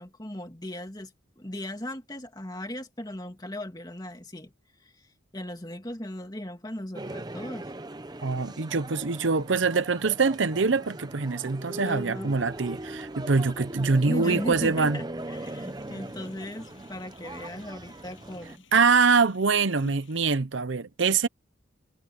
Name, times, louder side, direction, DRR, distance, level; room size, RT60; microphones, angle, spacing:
voice 1, 0.0-4.5 4.8-4.9 5.3-7.7 11.8-12.4 14.0-18.6, left 1 dB, 20° left, 2.5 m, -37 dB
sound 1, 6.9-18.6, right 1 dB, 20° right, 0.9 m, -39 dB
voice 2, 8.2-15.0 18.7-21.3, right 4 dB, 75° right, 0.8 m, -24 dB
sound 2, 15.1-20.3, left 3 dB, 85° left, 7.7 m, -55 dB
head